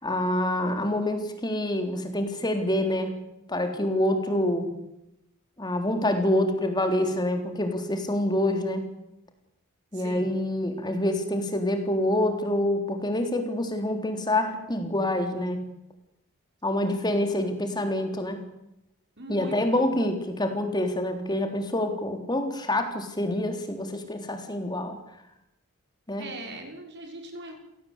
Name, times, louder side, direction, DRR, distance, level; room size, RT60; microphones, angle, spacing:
voice 1, 0.0-3.1 3.5-4.7 5.6-8.9 9.9-15.6 16.6-18.4 19.3-25.0 26.1-26.3, left 1 dB, 20° left, 5 dB, 3.6 m, -26 dB
voice 2, 9.9-10.3 19.2-20.0 26.2-27.6, right 2 dB, 50° right, 3 dB, 5.8 m, -40 dB
28.0 x 18.0 x 8.3 m, 0.86 s
head